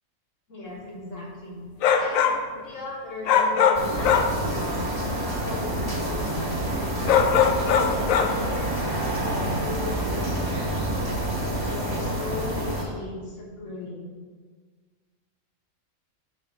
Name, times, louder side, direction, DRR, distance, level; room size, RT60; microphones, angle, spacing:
voice 1, 0.5-1.6 1.9-7.4 7.9-11.2 11.6-14.1, left 2 dB, 70° left, -4 dB, 1.9 m, -38 dB
sound 1, 1.8-2.5 3.3-4.4 7.1-8.4, left 7 dB, 85° left, 1.0 m, -21 dB
sound 2, 3.7-12.8, right 1 dB, 20° right, 1.1 m, -28 dB
6.8 x 3.5 x 5.7 m, 1.5 s
omnidirectional pair, 1.4 m